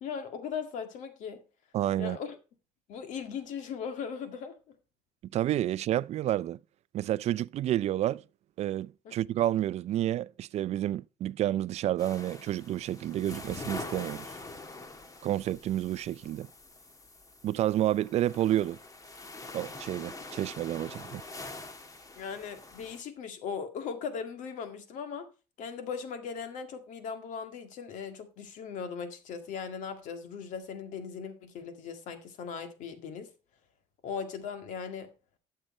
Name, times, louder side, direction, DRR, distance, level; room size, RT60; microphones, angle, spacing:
voice 1, 0.0-1.4 2.0-2.4 2.9-4.6 9.1-9.2 22.2-25.3 25.6-33.3 34.0-35.1, left 6 dB, 70° left, 1.8 m, -38 dB
voice 2, 1.7-2.2 5.2-6.6 6.9-8.2 8.6-14.3 15.2-16.5 17.4-18.8 19.5-21.2, right 13 dB, 55° right, 0.4 m, -30 dB
sound 1, 12.0-23.0, left 2 dB, 25° left, 1.5 m, -45 dB
12.5 x 6.7 x 4.2 m
cardioid pair, 95°, 13 cm